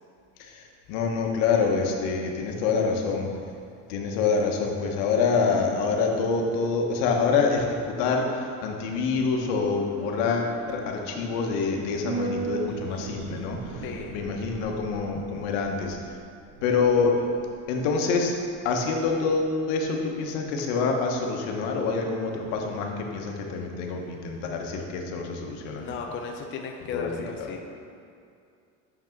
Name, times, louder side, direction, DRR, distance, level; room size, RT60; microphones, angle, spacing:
voice 1, 0.4-3.3 3.9-13.8 14.1-16.2 16.6-17.3 17.7-18.4 18.6-25.8 26.9-27.1 27.4-27.5, left 4 dB, 90° left, 1 dB, 1.1 m, -26 dB
sound 1, 8.6-19.1 19.4-19.5, right 4 dB, 55° right, 0.8 m, -39 dB
voice 2, 13.8-14.2 25.8-27.6, left 5 dB, 35° left, 2 dB, 0.6 m, -35 dB
6.5 x 5.9 x 4.5 m, 2.5 s
cardioid pair, 160°, 36 cm